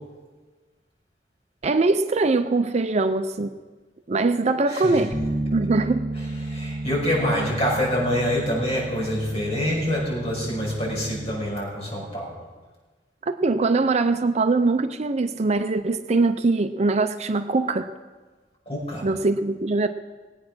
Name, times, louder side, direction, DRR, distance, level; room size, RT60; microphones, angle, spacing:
voice 1, 1.6-3.5 4.1-5.1 5.5-6.1 13.2-17.9 19.0-19.9, right 3 dB, 40° right, 9 dB, 0.5 m, -22 dB
voice 2, 4.7-5.1 6.1-12.3 18.7-19.1, equal, 35° left, -3 dB, 5.9 m, -26 dB
Bass guitar, 5.1-11.4, right 2 dB, ahead, 2.1 m, -32 dB
20.0 x 8.5 x 6.2 m, 1.3 s
head